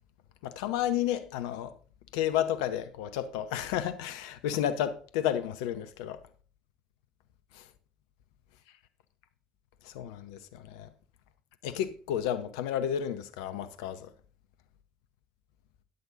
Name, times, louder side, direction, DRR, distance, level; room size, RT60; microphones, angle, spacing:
voice 1, 0.4-1.7 2.1-6.2 7.5-7.7 9.8-10.9 11.6-14.1, left 10 dB, 70° left, 0.8 m, -32 dB
9.8 x 7.8 x 3.9 m
figure-of-eight pair, 55°, 3 cm